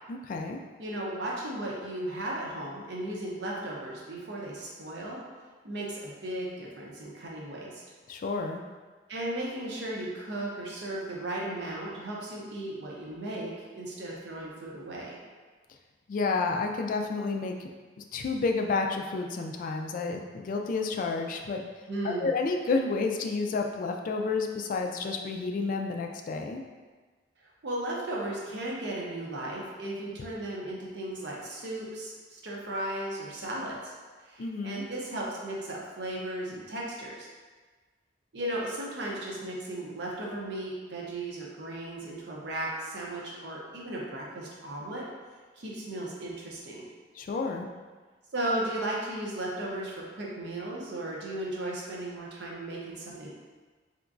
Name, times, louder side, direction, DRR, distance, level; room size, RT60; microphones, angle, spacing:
voice 1, 0.1-0.6 8.1-8.6 16.1-17.7 18.1-21.6 22.0-26.6 34.4-34.8 47.2-47.7, left 4 dB, 50° left, 3 dB, 0.3 m, -30 dB
voice 2, 0.8-5.2 5.6-7.8 9.1-15.2 21.9-22.3 27.6-33.9 34.2-37.3 38.3-45.1 45.6-46.9 48.3-53.3, right 1 dB, 70° right, -4 dB, 0.7 m, -35 dB
3.4 x 2.9 x 2.5 m, 1.4 s
head